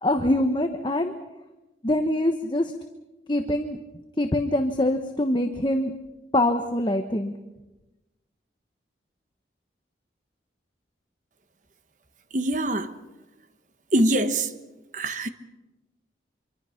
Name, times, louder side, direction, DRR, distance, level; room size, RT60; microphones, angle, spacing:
voice 1, 0.0-1.1 1.8-2.7 3.3-3.8 4.2-5.9 6.3-7.3, left 1 dB, 25° left, 1.1 m, -24 dB
voice 2, 12.3-12.9 13.9-14.5 14.9-15.3, right 1 dB, 45° right, 1.3 m, -23 dB
25.5 x 24.5 x 5.9 m
head